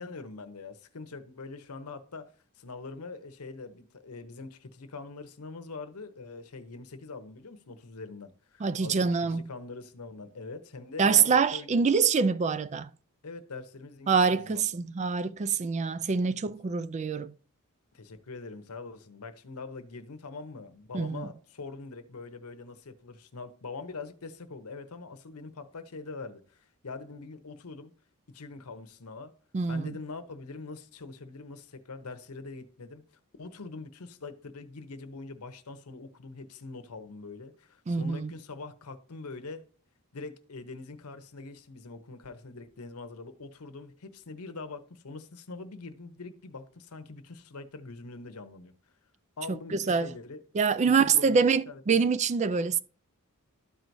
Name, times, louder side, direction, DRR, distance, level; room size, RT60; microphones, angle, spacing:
voice 1, 0.0-11.9 13.2-14.6 17.9-27.9 28.3-29.3 29.7-33.0 33.4-39.6 40.1-48.7 49.4-50.4 50.8-52.0, left 3 dB, 80° left, 0.8 m, -43 dB
voice 2, 8.6-9.4 11.0-12.9 14.1-17.3 20.9-21.3 29.5-29.9 37.9-38.3 49.9-50.1 50.5-52.8, right 5 dB, 30° right, 0.3 m, -25 dB
12.5 x 4.6 x 2.7 m
head